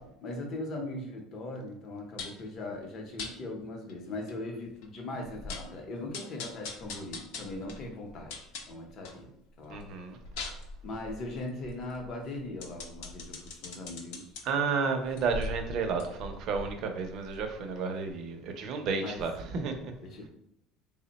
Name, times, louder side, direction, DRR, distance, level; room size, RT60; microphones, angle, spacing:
voice 1, 0.0-9.3 9.6-9.9 10.8-14.4 19.0-19.3 20.0-20.3, left 2 dB, 35° left, 2 dB, 0.7 m, -40 dB
sound 1, 2.2-2.5 3.2-3.3 3.9-4.0 4.3-4.4 4.8-4.9 5.2-5.8 6.1-9.2 9.6-14.4 15.0-17.7 18.1-18.2, left 3 dB, 85° left, 0.7 m, -42 dB
voice 2, 9.7-10.2 14.4-19.9, right 5 dB, 45° right, 5 dB, 0.5 m, -32 dB
3.5 x 2.1 x 3.9 m, 0.78 s
cardioid pair, 160°, 0 cm